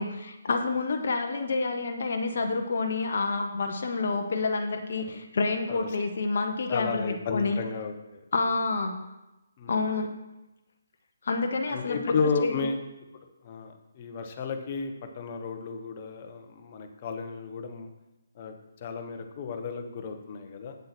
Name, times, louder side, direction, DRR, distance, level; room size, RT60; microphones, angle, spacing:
voice 1, 0.0-7.6 8.3-9.0 9.7-10.1 11.2-12.2 12.4-12.6, left 3 dB, 55° left, 4 dB, 0.9 m, -28 dB
voice 2, 6.7-8.2 9.6-9.8 11.7-12.8 13.4-17.9 18.3-18.5 18.8-20.8, left 5 dB, 35° left, 5 dB, 1.1 m, -33 dB
8.4 x 7.7 x 4.3 m, 0.99 s
figure-of-eight pair, 140°, 0 cm